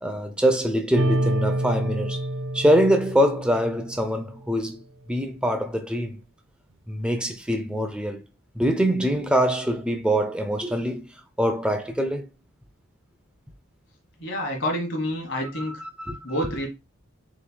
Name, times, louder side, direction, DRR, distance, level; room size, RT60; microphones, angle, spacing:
voice 1, 0.0-2.3 2.5-4.8 5.1-6.2 6.9-8.2 8.5-11.1 11.4-12.3 15.6-16.2, equal, 5° right, 0.5 m, -24 dB
sound 1, 0.9-4.4, right 1 dB, 65° right, 0.4 m, -27 dB
voice 2, 14.2-15.7 16.2-16.7, equal, 60° left, 1.5 m, -28 dB
6.5 x 3.2 x 2.2 m
head